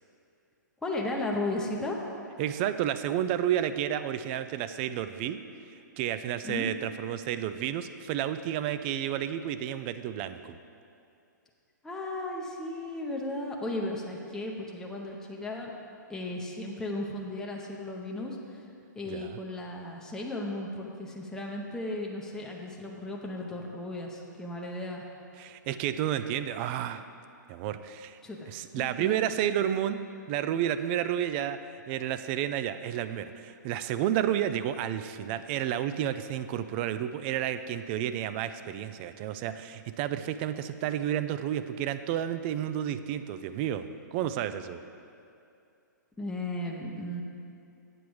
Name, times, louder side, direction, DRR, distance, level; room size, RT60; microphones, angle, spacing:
voice 1, 0.8-2.0 6.4-6.7 11.8-15.7 16.1-18.6 18.9-25.0 28.2-28.5 28.8-29.2 46.2-47.2, left 2 dB, 5° left, -2 dB, 0.7 m, -35 dB
voice 2, 2.4-5.4 6.0-10.6 19.1-19.4 25.4-27.0 27.5-28.2 28.5-30.0 30.3-31.6 31.9-44.8, right 10 dB, 35° right, 11 dB, 0.4 m, -31 dB
7.9 x 7.0 x 4.7 m, 2.5 s
hypercardioid pair, 125°, 10 cm